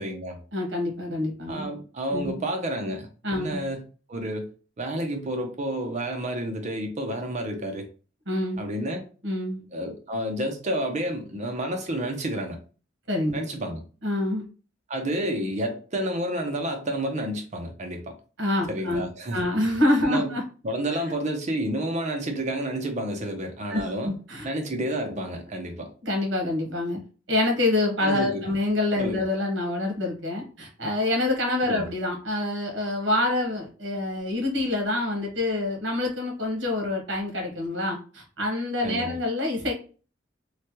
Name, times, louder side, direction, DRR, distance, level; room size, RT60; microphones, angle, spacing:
voice 1, 0.0-0.4 1.5-3.8 4.1-4.5 4.8-7.9 8.6-9.0 9.7-12.6 13.3-13.8 14.9-18.1 18.7-19.4 20.0-20.3 20.6-24.1 24.4-25.9 28.0-28.4 29.0-29.2 31.7-31.9 38.8-39.2, right 1 dB, 40° right, 0.6 m, -30 dB
voice 2, 0.5-1.7 2.1-2.4 3.2-3.6 8.3-8.6 9.2-9.6 13.1-13.4 14.0-14.4 18.4-20.4 20.9-21.0 23.7-24.5 26.0-27.0 27.3-39.7, left 2 dB, 75° right, 1.1 m, -26 dB
3.2 x 2.2 x 2.8 m
head